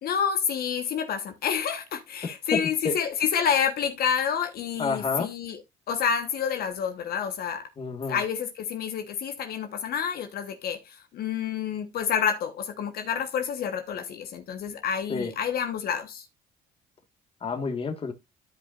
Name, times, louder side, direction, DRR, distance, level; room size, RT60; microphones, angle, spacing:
voice 1, 0.0-5.6 5.9-7.7 8.1-16.3, left 7 dB, 65° left, 1.2 m, -28 dB
voice 2, 2.2-2.6 2.8-2.9 4.8-5.3 7.8-8.2 15.1-15.3 17.4-18.1, left 4 dB, 35° left, 1.6 m, -29 dB
13.0 x 5.2 x 2.5 m
cardioid pair, 110°, 17 cm